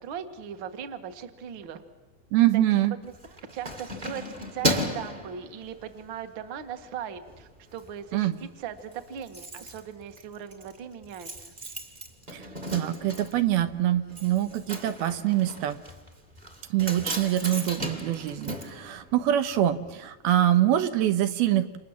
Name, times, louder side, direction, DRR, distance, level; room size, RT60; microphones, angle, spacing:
voice 1, 0.0-1.8 2.5-4.2 4.5-11.5, right 8 dB, 45° right, 8 dB, 1.6 m, -39 dB
voice 2, 2.3-3.0 8.1-8.4 12.3-12.4 12.7-15.8 16.7-21.8, right 12 dB, 90° right, 9 dB, 3.1 m, -24 dB
Keys jangling, 3.0-6.1 6.6-6.8 7.2-7.9 8.1-8.2 8.5-8.6 8.8-19.6 19.8-19.9, equal, 20° right, 1.2 m, -35 dB
30.0 x 27.5 x 7.4 m, 1.1 s
omnidirectional pair, 4.4 m